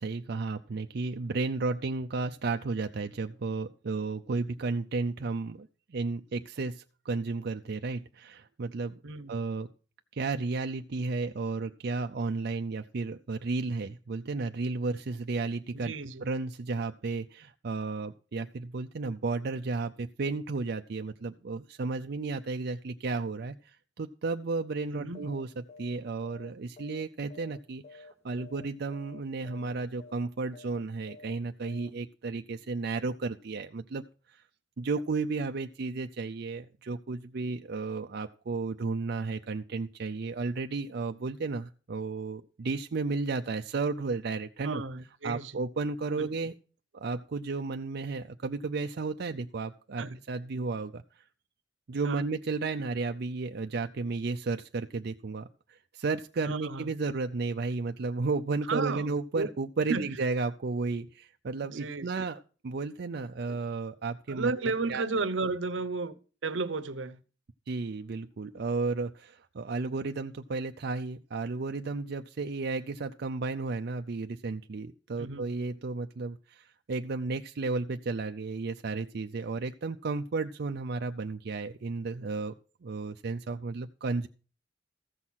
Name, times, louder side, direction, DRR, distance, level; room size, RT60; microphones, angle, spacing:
voice 1, 0.0-8.9 9.3-9.7 10.1-15.9 16.2-25.5 25.8-34.4 34.8-44.8 45.2-46.5 46.9-51.2 51.9-64.5 64.9-65.0 67.7-82.6 82.8-84.3, right 3 dB, 55° right, 0.5 m, -33 dB
voice 2, 9.0-9.4 15.7-16.2 24.9-25.3 44.6-45.5 46.2-46.3 50.0-50.2 52.0-52.2 56.4-56.9 58.7-59.5 59.9-60.1 61.7-62.1 64.3-66.1 66.4-67.2 75.2-75.5, right 3 dB, 80° right, 0.8 m, -33 dB
sound 1, 25.1-25.4 25.7-26.0 26.2-27.6 27.8-28.1 28.4-28.7 28.9-29.2 29.5-29.7 30.0-30.3 30.5-30.8 31.1-31.3 31.6-31.9, left 3 dB, 35° left, 2.1 m, -50 dB
14.5 x 6.2 x 5.7 m
head